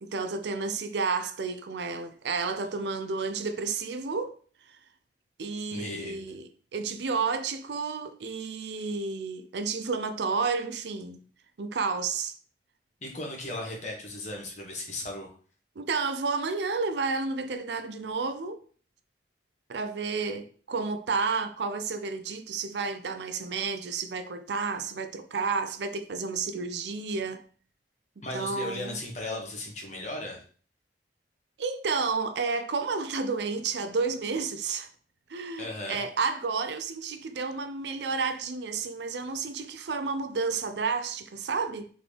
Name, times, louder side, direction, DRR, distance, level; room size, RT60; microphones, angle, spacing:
voice 1, 0.0-4.4 4.7-4.8 5.4-11.2 11.6-12.3 15.8-18.6 19.7-27.4 28.3-29.0 31.6-34.9 35.3-41.9, right 4 dB, 70° right, 0.5 m, -31 dB
voice 2, 5.7-6.2 13.0-15.3 28.2-30.4 35.6-36.0, left 1 dB, 40° left, 1.2 m, -36 dB
3.8 x 3.7 x 3.3 m
head